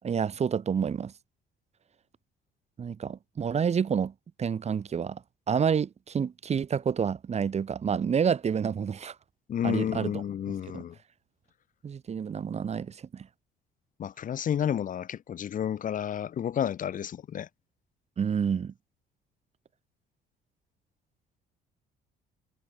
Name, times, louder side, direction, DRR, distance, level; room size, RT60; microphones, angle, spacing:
voice 1, 0.0-1.1 2.8-4.1 4.4-9.2 9.6-10.8 11.8-13.3 18.2-18.7, right 7 dB, 40° right, 7.0 m, -29 dB
voice 2, 9.5-10.9 14.0-17.5, left 9 dB, 50° left, 6.5 m, -31 dB
cardioid pair, 110°, 17 cm